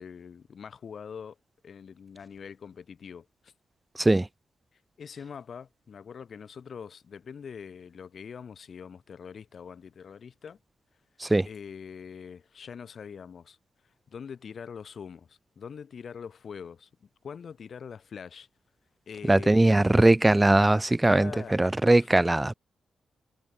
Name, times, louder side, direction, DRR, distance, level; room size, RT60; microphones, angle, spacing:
voice 1, 0.0-1.4 1.6-3.5 5.0-10.6 11.4-13.6 14.1-18.5 19.1-19.7 21.0-22.1, left 6 dB, 55° left, 5.7 m, -43 dB
voice 2, 19.3-22.5, right 2 dB, 15° right, 0.4 m, -20 dB
cardioid pair, 100°, 0 cm